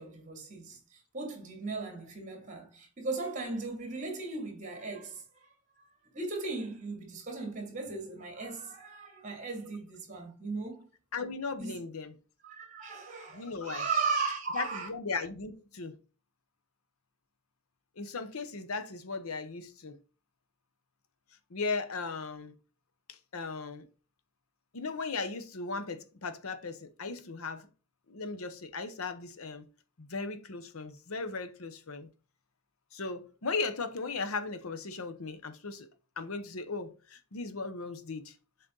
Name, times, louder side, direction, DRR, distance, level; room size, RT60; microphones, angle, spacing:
voice 1, 0.0-5.2 6.1-10.8 11.6-11.8 12.4-14.9, right 4 dB, 35° right, 2.5 m, -37 dB
voice 2, 11.1-12.1 13.3-13.9 14.5-16.0 18.0-20.0 21.5-22.5 23.1-23.9 24.7-27.7 28.1-29.6 30.0-32.1 32.9-35.9 36.2-38.3, left 4 dB, 80° left, 0.9 m, -37 dB
7.4 x 4.2 x 3.9 m
head